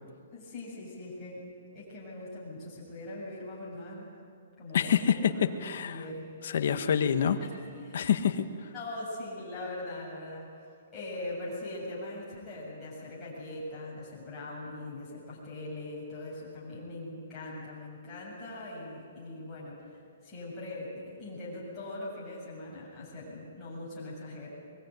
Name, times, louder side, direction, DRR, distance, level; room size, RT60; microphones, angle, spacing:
voice 1, 0.3-1.4 1.7-4.1 4.6-5.5 5.8-6.2 6.7-7.0 7.4-8.0 8.7-10.5 10.9-24.5, left 2 dB, 10° left, -9 dB, 7.4 m, -41 dB
voice 2, 4.7-6.0 6.4-7.4 7.9-8.7, left 8 dB, 50° left, 8 dB, 1.4 m, -27 dB
24.0 x 21.5 x 9.3 m, 2.3 s
hypercardioid pair, 180°, 0 cm